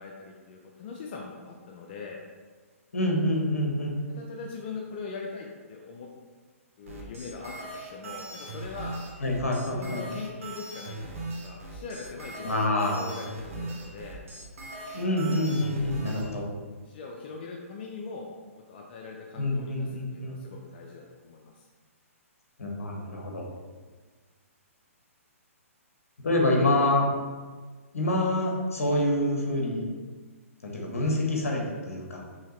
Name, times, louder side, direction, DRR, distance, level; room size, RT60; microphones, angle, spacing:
voice 1, 0.0-2.2 4.1-6.1 6.8-9.0 9.6-14.2 16.9-18.3 18.7-21.7 26.6-26.7, left 4 dB, 45° left, 0 dB, 0.5 m, -41 dB
voice 2, 2.9-3.9 9.2-10.0 12.4-13.0 14.9-16.4 19.4-20.4 22.6-23.5 26.2-27.1 27.9-29.8 30.6-32.2, left 1 dB, 75° left, 0 dB, 1.1 m, -26 dB
sound 1, 6.9-16.2, right 2 dB, 65° right, 1.1 m, -39 dB
5.5 x 2.8 x 3.1 m, 1.4 s
hypercardioid pair, 130°, 8 cm